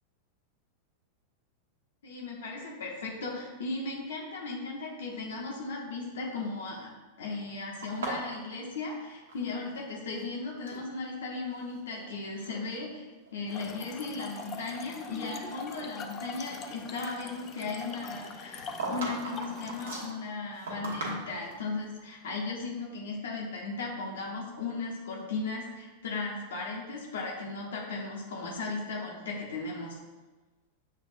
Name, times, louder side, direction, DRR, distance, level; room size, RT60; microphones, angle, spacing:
voice 1, 2.0-6.9 7.2-30.0, left 3 dB, 65° left, -3 dB, 0.8 m, -36 dB
sound 1, 7.8-9.8 10.1-10.9 11.5-12.0 12.4-12.6 13.3-13.4 13.9-15.4 15.7-15.9 18.2-21.6, right 2 dB, 65° right, 1.1 m, -39 dB
Trickle dribble / Fill (with liquid), 13.5-20.1, left 5 dB, 30° left, 0.4 m, -43 dB
7.3 x 2.5 x 2.6 m, 1.2 s
figure-of-eight pair, 90°, 0 cm